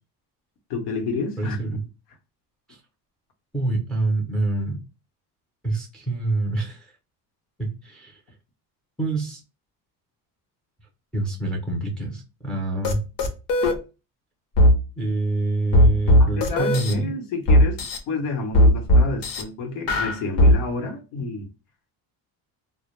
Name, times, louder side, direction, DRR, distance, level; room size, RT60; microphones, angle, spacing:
voice 1, 0.7-1.6 16.2-21.5, left 3 dB, 90° left, 0.9 m, -30 dB
voice 2, 1.4-1.8 3.5-4.8 5.6-6.9 7.6-8.2 9.0-9.4 11.1-13.0 15.0-17.1, right 2 dB, ahead, 0.5 m, -26 dB
sound 1, 12.8-12.9 13.2-13.7 14.6-14.7 15.7-16.9 17.5-18.0 18.5-19.4 19.9-20.5, equal, 55° left, 0.7 m, -16 dB
2.1 x 2.0 x 2.9 m
cardioid pair, 150°, 40 cm